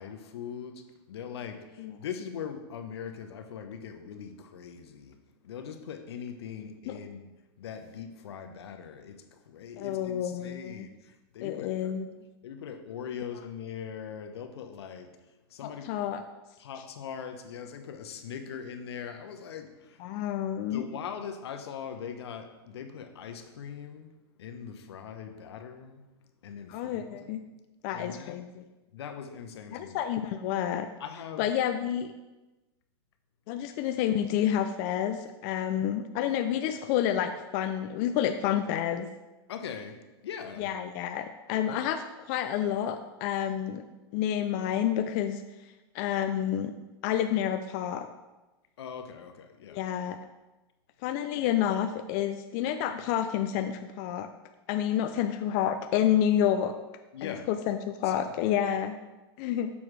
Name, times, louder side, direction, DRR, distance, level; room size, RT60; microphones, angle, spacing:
voice 1, 0.0-5.2 5.4-7.2 7.6-11.9 12.4-15.9 16.6-20.1 20.7-24.1 24.4-26.0 26.4-27.3 27.9-28.4 28.9-30.0 31.0-31.5 39.5-40.7 48.8-49.8 57.1-57.5 58.0-58.5, left 7 dB, 80° left, 7 dB, 0.8 m, -41 dB
voice 2, 9.8-10.9 11.4-12.1 15.6-16.2 20.0-20.9 26.7-27.4 27.8-28.6 29.7-30.9 31.4-32.1 33.5-39.1 40.6-43.8 44.1-45.4 45.9-46.7 47.0-48.1 49.7-50.2 51.0-54.3 54.7-56.7 57.2-59.0 59.4-59.7, left 10 dB, 45° left, 7 dB, 0.4 m, -29 dB
7.0 x 6.1 x 3.3 m, 1.1 s
hypercardioid pair, 130°, 13 cm